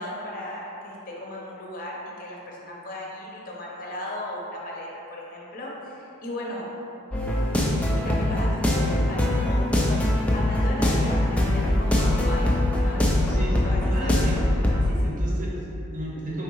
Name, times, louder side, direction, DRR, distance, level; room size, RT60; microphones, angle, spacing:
voice 1, 0.0-6.6 7.9-12.6 12.8-14.3 14.8-15.2, left 1 dB, 40° left, -3 dB, 0.6 m, -36 dB
sound 1, 7.1-14.9, left 1 dB, 5° left, 0.3 m, -22 dB
voice 2, 13.9-14.4 15.0-16.4, right 1 dB, 40° right, -5 dB, 0.8 m, -33 dB
4.5 x 3.6 x 3.0 m, 2.9 s
head